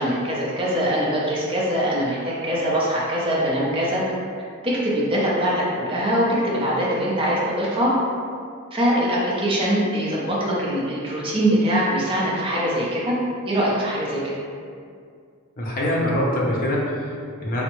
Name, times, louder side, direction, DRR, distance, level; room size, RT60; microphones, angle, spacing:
voice 1, 0.0-2.2 2.4-4.0 4.6-7.9 8.7-13.2 13.5-14.3, equal, 25° right, -6 dB, 0.6 m, -22 dB
voice 2, 15.6-17.6, left 1 dB, 40° left, -4 dB, 0.6 m, -24 dB
3.4 x 2.1 x 3.0 m, 2.2 s
head